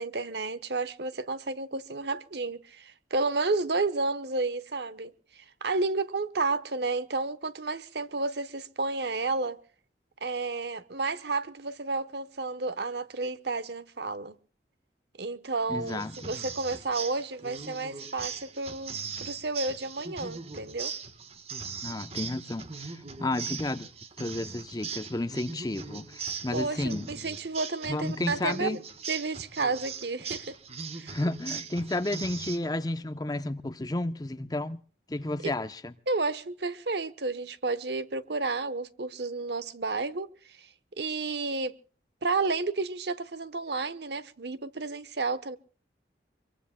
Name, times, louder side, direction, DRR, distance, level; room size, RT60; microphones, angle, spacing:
voice 1, 0.0-9.6 10.2-14.4 15.2-20.9 26.5-28.8 29.1-30.5 31.0-31.1 35.4-35.5 36.1-40.3 40.6-40.7 41.0-41.7 42.2-45.6, right 3 dB, 65° right, 1.0 m, -31 dB
voice 2, 15.7-16.3 21.8-23.9 24.2-27.1 27.9-28.8 31.1-34.8 35.1-35.9, left 1 dB, 20° left, 0.7 m, -32 dB
sound 1, 15.9-32.6, right 5 dB, 35° right, 1.3 m, -40 dB
25.0 x 23.0 x 2.2 m
head